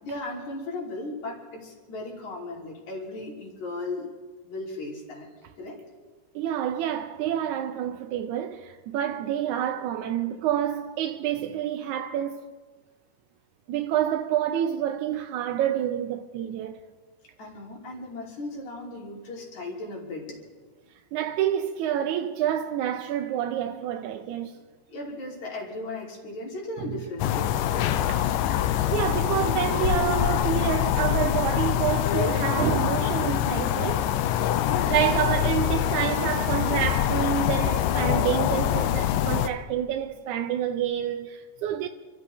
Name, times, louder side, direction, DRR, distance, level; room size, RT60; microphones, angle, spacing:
voice 1, 0.0-4.1 4.4-5.3 5.6-5.8 17.4-20.4 24.9-28.1 34.6-35.5, left 2 dB, 60° left, 4.6 m, -36 dB
voice 2, 6.4-12.5 13.7-16.8 21.1-24.6 28.1-28.2 28.9-34.1 34.9-41.9, right 10 dB, 75° right, 1.9 m, -28 dB
sound 1, 27.2-39.5, left 11 dB, 80° left, 2.3 m, -24 dB
28.5 x 14.0 x 3.5 m
omnidirectional pair, 3.8 m